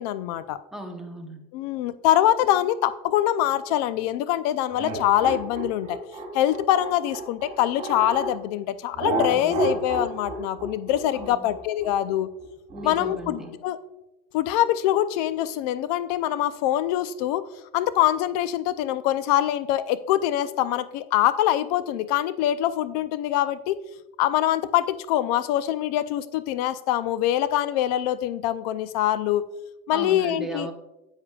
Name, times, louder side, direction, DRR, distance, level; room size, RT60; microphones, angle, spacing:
voice 1, 0.0-0.6 1.5-6.0 6.3-12.3 12.8-13.8 14.3-17.4 17.7-23.8 24.2-29.5 29.9-30.7, left 12 dB, 70° left, 14 dB, 0.4 m, -24 dB
voice 2, 0.7-1.4 9.3-9.7 11.1-11.5 12.7-13.5 29.9-30.7, right 1 dB, ahead, 2 dB, 0.8 m, -36 dB
sound 1, 4.7-8.3 9.0-13.5, right 3 dB, 30° right, 2.8 m, -31 dB
9.9 x 8.2 x 2.3 m, 0.98 s
cardioid pair, 155°, 21 cm